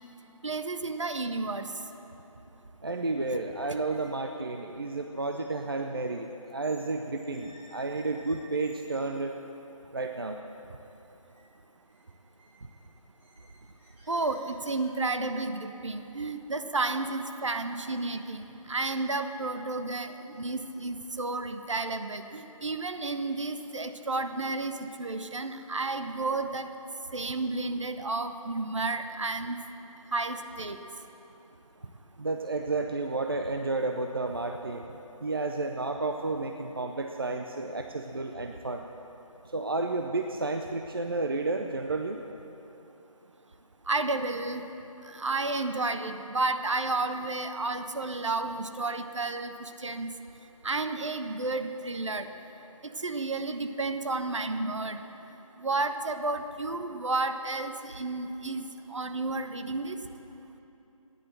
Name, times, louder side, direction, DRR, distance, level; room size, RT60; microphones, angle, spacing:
voice 1, 0.4-1.7 14.1-26.7 27.1-29.6 30.1-30.8 43.9-44.6 45.0-50.1 50.6-52.3 52.8-55.0 55.6-60.0, right 3 dB, 55° right, 8 dB, 1.0 m, -32 dB
sound 1, 2.8-3.0 3.3-6.9 7.1-9.1 9.7-9.8 10.1-10.5 10.8-11.4 11.7-15.1, right 1 dB, 15° right, 3.4 m, -58 dB
voice 2, 2.8-9.3 9.9-10.4 32.2-34.9 35.2-38.8 39.5-42.2, right 3 dB, 40° right, 4 dB, 0.6 m, -31 dB
14.5 x 10.5 x 7.7 m, 3.0 s
figure-of-eight pair, 170°, 18 cm